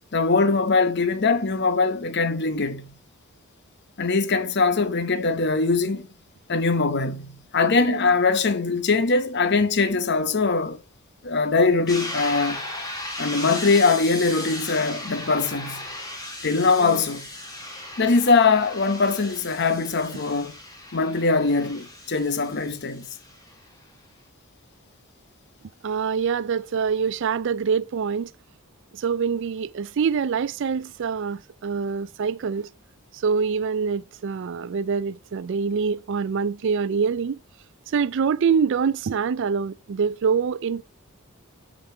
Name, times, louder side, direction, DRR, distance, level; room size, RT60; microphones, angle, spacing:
voice 1, 0.1-2.9 4.0-6.1 6.5-10.8 11.2-12.6 13.2-15.9 16.4-17.3 18.0-20.6 20.9-23.1, left 4 dB, 50° left, 0.8 m, -22 dB
sound 1, 11.9-23.5, left 1 dB, 15° left, 2.6 m, -36 dB
voice 2, 25.8-28.3 28.9-32.7 33.1-37.4 37.9-40.8, right 6 dB, 55° right, 0.4 m, -25 dB
9.9 x 5.2 x 5.7 m
head